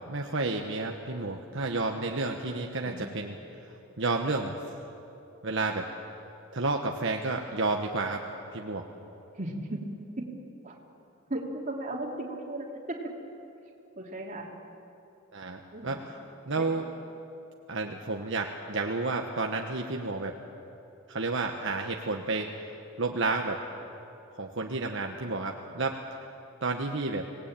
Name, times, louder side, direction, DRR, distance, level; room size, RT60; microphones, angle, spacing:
voice 1, 0.1-3.4 3.6-4.6 5.4-5.9 6.5-8.2 8.5-8.8 15.3-16.2 16.5-16.8 17.7-20.4 21.1-22.5 23.0-23.6 24.4-26.0 26.6-27.3, right 3 dB, 65° right, 2 dB, 1.3 m, -31 dB
voice 2, 9.4-9.8 10.2-10.3 10.6-10.7 11.3-13.1 14.0-14.5 15.7-15.9 16.5-16.8, right 1 dB, 40° right, 0 dB, 3.2 m, -36 dB
26.0 x 19.0 x 9.0 m, 2.9 s
head